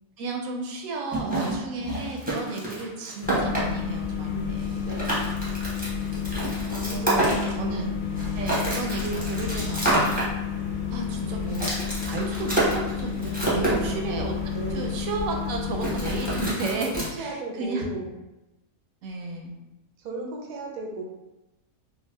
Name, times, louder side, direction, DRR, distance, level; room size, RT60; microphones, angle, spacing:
voice 1, 0.2-4.8 6.9-7.9 8.3-10.2 10.9-11.7 12.1-14.3 14.7-17.8 19.0-19.5, right 3 dB, 80° right, 1 dB, 1.0 m, -33 dB
sound 1, 1.1-3.6 4.5-4.6 4.9-7.7 8.2-10.2 11.5-13.8 15.8-17.1, right 1 dB, 10° right, 0.6 m, -28 dB
sound 2, 3.2-16.5, left 7 dB, 70° left, 0.9 m, -31 dB
voice 2, 4.3-5.4 6.4-7.9 13.4-15.0 16.8-18.1 20.0-21.0, right 2 dB, 55° right, -1 dB, 0.5 m, -36 dB
2.7 x 2.3 x 3.1 m, 1.0 s
omnidirectional pair, 1.4 m